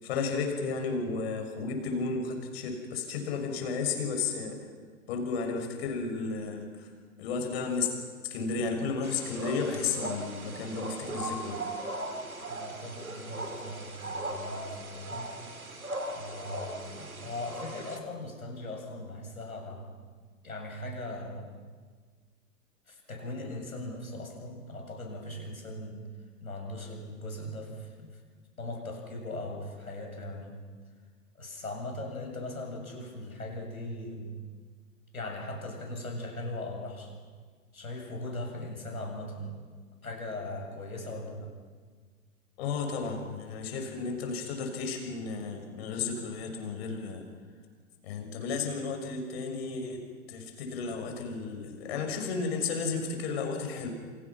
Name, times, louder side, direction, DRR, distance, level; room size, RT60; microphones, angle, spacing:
voice 1, 0.0-4.6 5.1-6.9 7.2-7.9 8.2-11.6 42.6-47.2 48.0-53.9, left 4 dB, 45° left, 5 dB, 6.3 m, -33 dB
sound 1, 9.0-18.0, right 2 dB, 80° right, 3.2 m, -38 dB
voice 2, 12.5-15.3 16.1-20.0 20.4-21.5 22.9-26.0 26.4-28.2 28.6-30.6 31.3-34.3 35.1-37.2 37.7-39.6 40.0-41.5, left 1 dB, 80° left, 2 dB, 7.8 m, -39 dB
28.5 x 27.5 x 6.0 m, 1.5 s
figure-of-eight pair, 110°, 42 cm